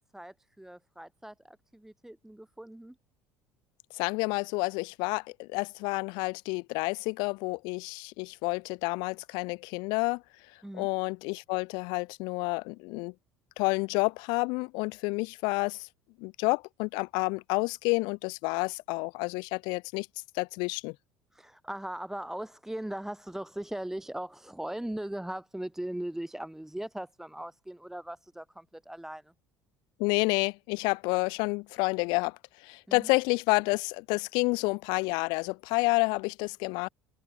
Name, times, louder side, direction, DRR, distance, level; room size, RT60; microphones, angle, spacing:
voice 1, 0.1-3.0 10.6-10.9 21.3-29.3 32.9-33.1, right 1 dB, 5° right, 1.2 m, -39 dB
voice 2, 3.9-10.2 10.8-13.1 13.6-15.9 16.2-20.1 20.3-20.9 30.0-36.9, left 28 dB, 60° left, 0.4 m, -29 dB
figure-of-eight pair, 65°, 8 cm